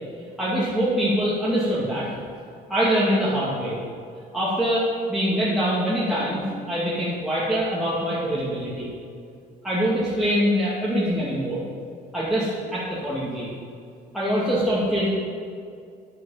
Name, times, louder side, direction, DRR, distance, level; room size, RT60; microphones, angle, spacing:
voice 1, 0.4-2.1 2.7-3.8 4.3-8.9 9.6-11.6 12.1-13.5 14.1-15.1, equal, ahead, -9 dB, 2.2 m, -24 dB
9.4 x 8.6 x 5.7 m, 2.3 s
cardioid pair, 110°, 17 cm